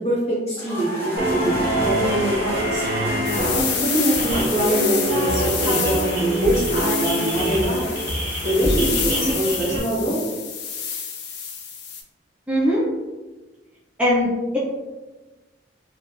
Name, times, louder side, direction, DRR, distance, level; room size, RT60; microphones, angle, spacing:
voice 1, 0.0-2.9 3.5-7.9 8.4-10.2, right 1 dB, 40° left, -6 dB, 1.0 m, -24 dB
sound 1, 0.6-10.3, equal, 15° left, 0.8 m, -35 dB
sound 2, 1.2-9.8, right 1 dB, 50° right, 0.7 m, -25 dB
sound 3, 3.2-12.0, left 6 dB, 65° left, 0.4 m, -29 dB
voice 2, 12.5-12.9 14.0-14.6, left 1 dB, 5° right, -7 dB, 0.4 m, -20 dB
3.1 x 2.2 x 2.4 m, 1.2 s
head